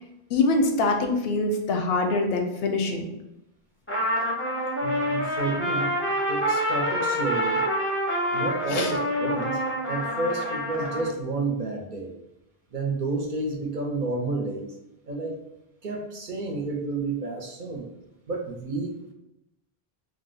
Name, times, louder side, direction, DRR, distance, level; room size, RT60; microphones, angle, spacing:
voice 1, 0.3-3.1 8.7-8.9, left 3 dB, 75° left, 4 dB, 0.8 m, -24 dB
Trumpet, 3.9-11.1, equal, 15° left, 0.5 m, -27 dB
voice 2, 4.8-5.9 6.3-7.6 8.3-9.6 9.9-12.1 12.7-14.7 15.1-15.4 15.8-17.9 18.3-18.9, right 3 dB, 55° right, 1 dB, 0.6 m, -30 dB
2.7 x 2.1 x 3.8 m, 0.88 s
omnidirectional pair, 1.1 m